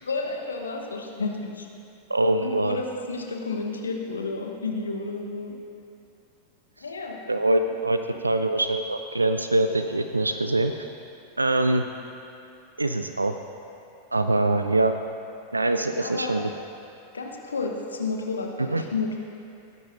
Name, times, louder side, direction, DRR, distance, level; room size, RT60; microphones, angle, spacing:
voice 1, 0.0-1.7 2.4-5.6 6.8-7.2 15.9-16.4 17.1-19.2, left 3 dB, 75° left, 1 dB, 1.2 m, -31 dB
voice 2, 2.1-2.8 7.3-10.7 11.4-11.9 12.8-13.4 14.1-15.0 15.5-16.5 18.6-18.8, right 2 dB, 80° right, 8 dB, 0.4 m, -23 dB
20.0 x 11.0 x 2.7 m, 2.6 s
figure-of-eight pair, 90°, 0 cm